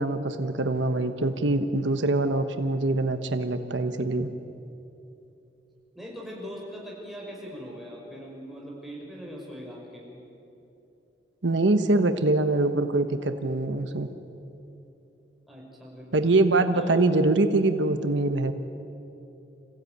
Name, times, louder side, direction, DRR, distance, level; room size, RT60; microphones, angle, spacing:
voice 1, 0.0-4.3 11.4-14.1 16.1-18.5, right 2 dB, 80° right, 9 dB, 1.1 m, -24 dB
voice 2, 5.9-10.2 15.5-16.3 16.7-17.0, equal, ahead, -4 dB, 5.6 m, -41 dB
27.5 x 16.0 x 9.4 m, 2.8 s
head